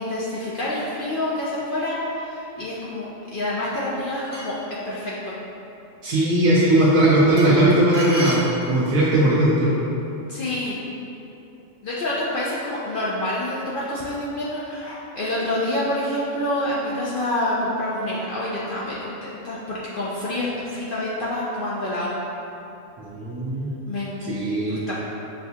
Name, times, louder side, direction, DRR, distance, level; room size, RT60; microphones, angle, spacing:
voice 1, 0.0-4.6 4.8-5.4 10.3-10.8 11.8-22.2 23.9-24.2 24.7-25.1, left 1 dB, 60° left, -7 dB, 0.5 m, -27 dB
sound 1, 3.6-4.7 7.4-9.0, right 1 dB, 40° right, 0.9 m, -34 dB
voice 2, 6.0-8.4 8.6-9.7 23.0-23.7 24.3-24.8, right 1 dB, 80° right, -9 dB, 1.0 m, -18 dB
6.2 x 2.3 x 2.7 m, 2.9 s
omnidirectional pair, 1.3 m